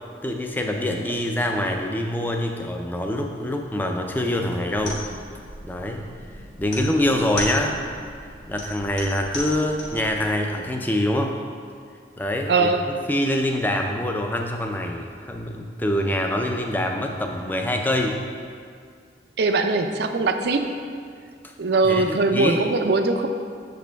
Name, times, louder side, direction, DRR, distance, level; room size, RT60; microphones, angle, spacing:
voice 1, 0.2-5.0 5.6-6.1 6.6-7.8 8.5-11.4 12.2-12.8 13.1-18.2 21.4-21.5 21.8-22.6, left 1 dB, 10° left, 2 dB, 0.4 m, -25 dB
sound 1, 4.7-10.1, left 2 dB, 80° left, 1.4 m, -36 dB
voice 2, 12.5-12.8 19.4-20.6 21.6-23.3, right 3 dB, 65° right, 6 dB, 0.4 m, -21 dB
7.0 x 5.1 x 3.4 m, 2.2 s
head